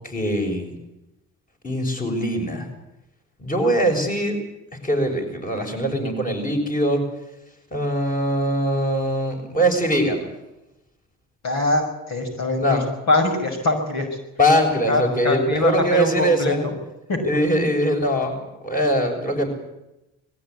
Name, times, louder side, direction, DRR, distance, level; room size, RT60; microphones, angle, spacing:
voice 1, 0.1-0.7 1.6-2.7 3.4-4.4 4.8-7.0 7.7-10.3 12.6-12.9 14.4-16.7 17.2-18.3 18.6-19.5, equal, 30° left, 3 dB, 6.8 m, -22 dB
voice 2, 11.4-14.1 14.9-16.5 17.1-17.2, left 2 dB, 65° left, 3 dB, 5.9 m, -23 dB
21.5 x 15.5 x 9.7 m, 0.91 s
cardioid pair, 90°, 30 cm